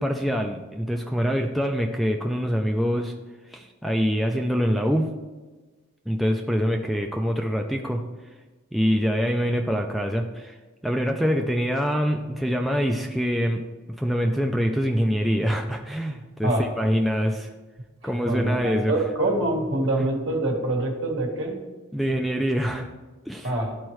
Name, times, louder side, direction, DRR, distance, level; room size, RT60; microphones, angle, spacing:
voice 1, 0.0-3.1 3.5-5.1 6.1-8.0 8.7-10.6 10.8-13.6 14.0-17.5 18.0-18.9 21.9-22.9 23.3-23.5, equal, ahead, 2 dB, 0.3 m, -25 dB
voice 2, 18.0-21.6 23.4-23.7, right 1 dB, 65° right, 1 dB, 1.4 m, -25 dB
12.0 x 4.4 x 3.1 m, 1.3 s
head